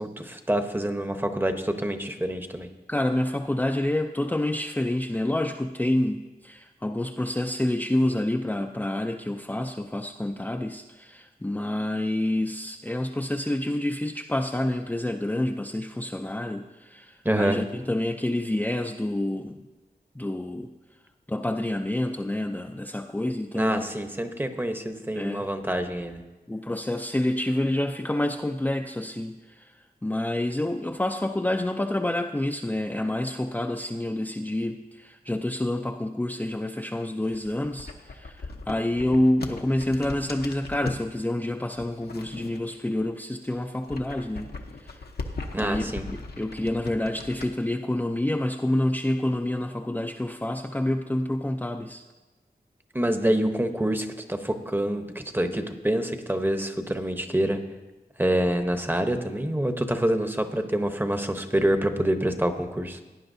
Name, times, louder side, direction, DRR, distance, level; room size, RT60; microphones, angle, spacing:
voice 1, 0.0-2.7 17.2-17.6 23.5-26.2 45.5-46.1 52.9-57.6 58.2-63.0, right 1 dB, 10° right, 7 dB, 0.9 m, -26 dB
voice 2, 2.9-19.6 20.1-20.7 21.3-23.8 25.1-25.5 26.5-44.5 44.8-45.0 45.5-52.0, left 1 dB, 10° left, 2 dB, 0.5 m, -28 dB
sound 1, 37.2-41.1 41.8-43.1 43.4-47.5, left 3 dB, 75° left, 0.9 m, -38 dB
17.5 x 9.6 x 2.7 m, 1.1 s
wide cardioid pair, 75°, 16 cm